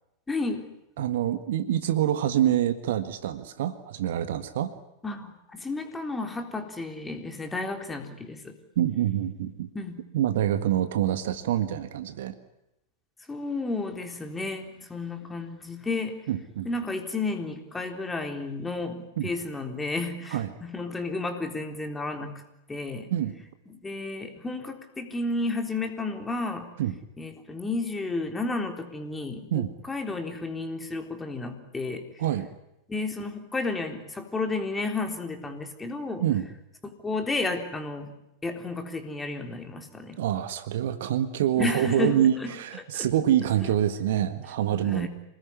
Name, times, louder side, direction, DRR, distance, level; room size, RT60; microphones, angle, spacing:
voice 1, 0.3-0.7 5.0-8.6 9.7-10.0 13.3-16.2 16.7-22.3 22.7-23.1 23.7-26.7 27.2-32.0 32.9-36.2 37.0-38.1 38.4-40.2 41.6-42.5 42.9-43.1 44.8-45.1, left 3 dB, 10° left, 5 dB, 3.7 m, -32 dB
voice 2, 1.0-4.7 8.7-9.7 10.1-12.3 16.3-16.7 19.2-19.3 20.3-20.5 23.1-23.4 26.8-26.9 29.5-29.7 32.2-32.5 36.2-36.5 40.2-45.1, right 11 dB, 55° right, 11 dB, 1.7 m, -26 dB
27.5 x 20.0 x 9.9 m, 0.87 s
figure-of-eight pair, 90°, 0 cm